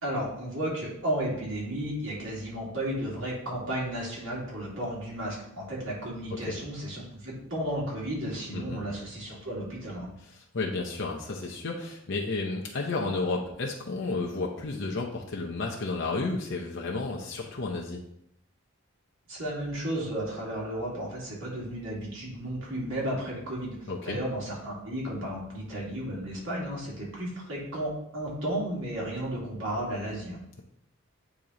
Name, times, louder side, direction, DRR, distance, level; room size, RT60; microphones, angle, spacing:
voice 1, 0.0-10.1 19.3-23.8 24.0-30.4, right 1 dB, 65° right, -5 dB, 2.3 m, -33 dB
voice 2, 10.5-18.0 23.9-24.2, left 3 dB, 60° left, -1 dB, 0.7 m, -32 dB
8.5 x 3.0 x 3.8 m, 0.74 s
head